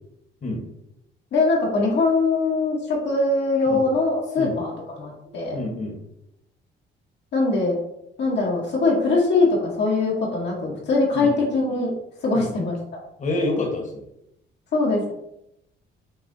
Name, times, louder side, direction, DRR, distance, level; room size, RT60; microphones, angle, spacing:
voice 1, 1.3-4.7 5.0-5.6 7.3-7.8 8.2-11.9 12.2-12.7 14.7-15.1, left 3 dB, 60° left, -3 dB, 1.0 m, -22 dB
voice 2, 5.5-6.0 11.1-11.3 12.3-12.5 13.2-14.0, left 2 dB, 40° left, 1 dB, 1.1 m, -27 dB
5.8 x 2.4 x 2.6 m, 0.81 s
cardioid pair, 90°, 20 cm